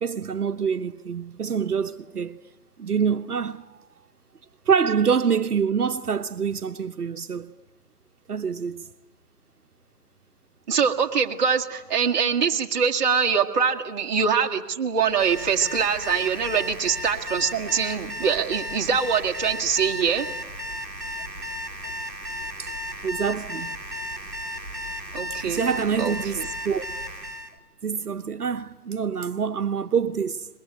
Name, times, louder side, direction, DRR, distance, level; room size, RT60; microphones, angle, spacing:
voice 1, 0.0-2.4 2.8-3.8 4.7-7.5 8.3-8.9 13.4-13.5 22.6-22.7 23.0-23.8 25.5-26.8 27.8-30.5, right 6 dB, 70° right, 1.1 m, -26 dB
voice 2, 10.7-20.3 25.1-25.7 26.0-26.4, right 6 dB, 30° right, 1.7 m, -23 dB
Alarm, 15.0-27.5, equal, ahead, 0.8 m, -35 dB
23.5 x 21.0 x 9.3 m
figure-of-eight pair, 145°, 47 cm